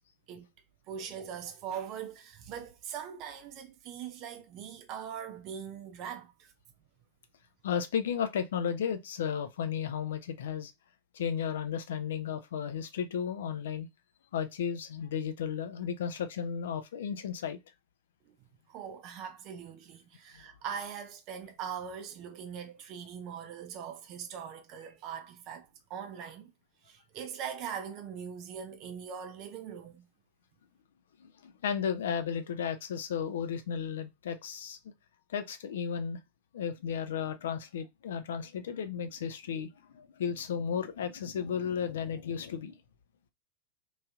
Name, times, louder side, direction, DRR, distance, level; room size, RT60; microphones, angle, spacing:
voice 1, 0.9-6.5 18.7-26.5 26.8-30.1, right 8 dB, 40° right, 0.5 m, -41 dB
voice 2, 7.6-10.7 11.1-13.9 14.3-17.6 31.2-34.9 35.3-36.2 36.5-42.8, left 7 dB, 60° left, 0.4 m, -34 dB
3.1 x 2.7 x 2.3 m
figure-of-eight pair, 90°, 0 cm